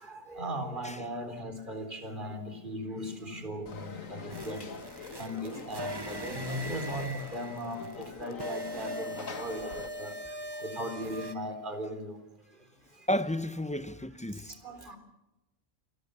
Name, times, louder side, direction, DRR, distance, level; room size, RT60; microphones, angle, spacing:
voice 1, 0.0-4.6 5.2-7.8 8.2-9.6 10.0-10.1 10.6-12.1 14.6-15.0, equal, 40° right, 4.1 m, -37 dB
Conversation / Crowd, 3.7-9.9, left 5 dB, 85° left, 2.1 m, -44 dB
sound 1, 4.3-11.3, equal, 20° right, 0.9 m, -41 dB
voice 2, 13.1-14.5, equal, 5° left, 0.6 m, -32 dB
28.5 x 21.0 x 6.9 m
omnidirectional pair, 1.3 m